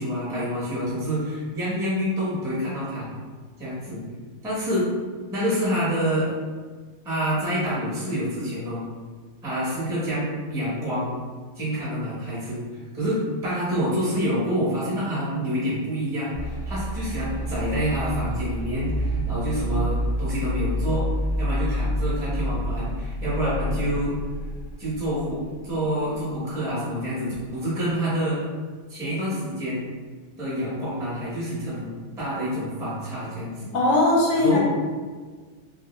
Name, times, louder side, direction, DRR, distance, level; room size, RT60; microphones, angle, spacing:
voice 1, 0.0-3.1 3.6-4.0 4.4-4.9 5.3-6.3 7.0-8.8 9.4-11.2 11.6-12.6 12.9-21.0 21.4-24.1 24.8-28.4 28.9-29.9 30.4-33.7 34.3-34.6, equal, 5° right, -9 dB, 0.6 m, -27 dB
sound 1, 16.3-25.4, equal, 40° left, 0.6 m, -28 dB
voice 2, 33.7-34.6, left 2 dB, 70° left, -3 dB, 0.9 m, -19 dB
2.4 x 2.0 x 2.9 m, 1.5 s
omnidirectional pair, 1.3 m